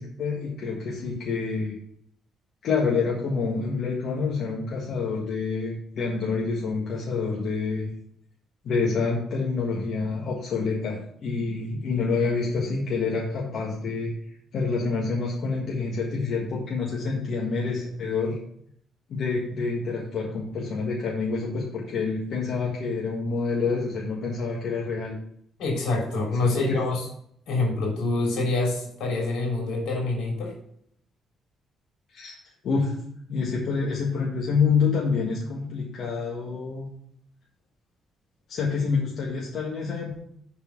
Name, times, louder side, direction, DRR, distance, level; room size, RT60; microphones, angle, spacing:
voice 1, 0.0-1.8 2.6-7.9 8.6-18.4 19.1-25.2 26.4-26.8 32.1-32.4 32.6-33.0 33.3-36.9 38.5-40.2, left 4 dB, 65° left, -3 dB, 1.6 m, -27 dB
voice 2, 25.6-27.1 27.5-30.5, left 2 dB, 85° left, -2 dB, 3.4 m, -26 dB
7.1 x 4.4 x 5.9 m, 0.68 s
cardioid pair, 90°, 0 cm